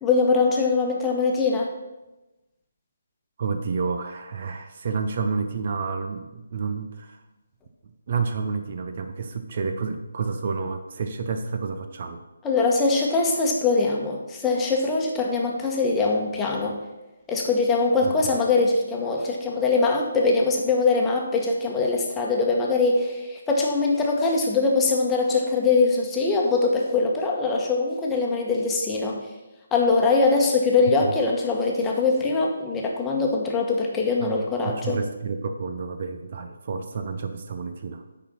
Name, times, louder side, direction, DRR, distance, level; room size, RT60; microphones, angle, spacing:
voice 1, 0.0-1.7 12.4-16.8 17.3-29.2 29.7-35.0, left 3 dB, 10° left, -1 dB, 1.3 m, -22 dB
voice 2, 3.4-7.2 8.1-12.2 18.0-18.4 34.2-34.4 34.6-38.0, right 5 dB, 45° right, 7 dB, 0.8 m, -30 dB
10.0 x 4.4 x 5.7 m, 1.0 s
figure-of-eight pair, 150°, 0 cm